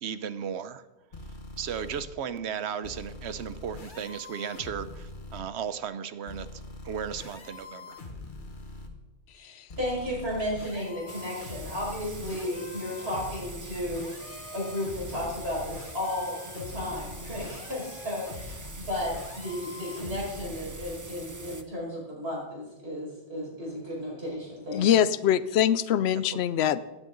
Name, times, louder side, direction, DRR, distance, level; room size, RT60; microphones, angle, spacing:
voice 1, 0.0-0.8 1.6-8.0, right 8 dB, 90° right, 14 dB, 1.0 m, -35 dB
sound 1, 1.1-2.0 2.8-5.4 6.3-8.9 9.7-20.9, left 2 dB, 50° left, 1.5 m, -43 dB
voice 2, 9.4-24.9, left 1 dB, 70° right, -4 dB, 5.7 m, -34 dB
sound 2, 11.1-21.6, right 3 dB, 20° right, 0.7 m, -45 dB
voice 3, 24.7-26.8, left 10 dB, 80° left, 16 dB, 0.8 m, -24 dB
17.0 x 9.7 x 3.9 m, 1.0 s
omnidirectional pair, 1.1 m